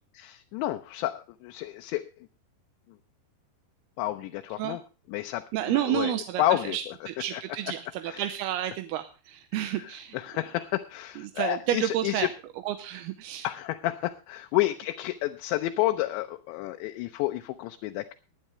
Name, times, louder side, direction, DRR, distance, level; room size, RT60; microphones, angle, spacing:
voice 1, 0.2-2.0 4.0-4.8 5.1-7.0 7.3-7.4 8.1-8.2 9.6-12.3 13.4-18.1, left 15 dB, 80° left, 5 dB, 2.9 m, -30 dB
voice 2, 5.5-10.2 11.4-12.3 12.7-13.5, right 12 dB, 75° right, 8 dB, 2.5 m, -30 dB
21.0 x 9.4 x 3.2 m, 0.32 s
omnidirectional pair, 5.3 m